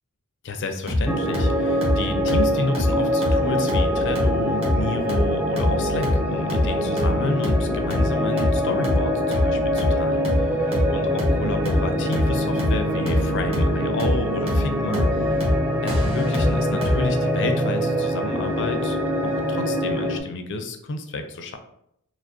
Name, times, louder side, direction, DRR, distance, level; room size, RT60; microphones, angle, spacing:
voice 1, 0.4-15.4 15.8-19.0 19.2-21.6, left 2 dB, 55° left, 6 dB, 0.5 m, -30 dB
sound 1, 0.9-17.1, left 1 dB, 25° right, 1.0 m, -25 dB
sound 2, 1.1-20.2, equal, 10° right, 0.3 m, -24 dB
sound 3, 12.2-19.9, equal, 65° right, 1.0 m, -43 dB
4.8 x 2.0 x 2.6 m, 0.74 s
head